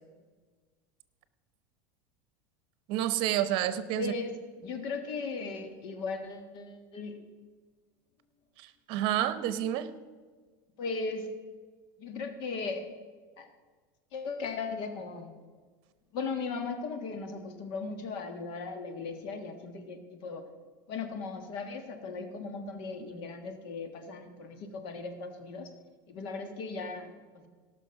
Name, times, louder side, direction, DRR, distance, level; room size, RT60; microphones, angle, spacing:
voice 1, 2.9-4.1 8.6-9.9, right 12 dB, 55° right, 14 dB, 0.9 m, -29 dB
voice 2, 3.9-7.2 10.8-11.3 12.0-12.9 13.4-13.5 14.1-15.3 16.1-20.4 20.9-25.7 26.1-27.5, left 4 dB, 55° left, 7 dB, 1.5 m, -37 dB
17.5 x 6.1 x 5.8 m, 1.4 s
supercardioid pair, 135°, 10 cm